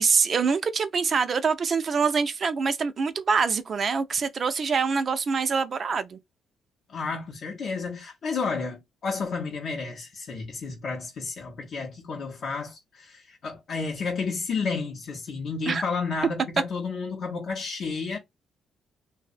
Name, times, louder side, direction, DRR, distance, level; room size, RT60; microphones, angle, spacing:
voice 1, 0.0-6.2 15.7-15.8, right 5 dB, 45° right, 0.4 m, -25 dB
voice 2, 6.9-18.2, left 4 dB, 60° left, 0.6 m, -31 dB
2.6 x 2.0 x 2.4 m
cardioid pair, 90°, 0 cm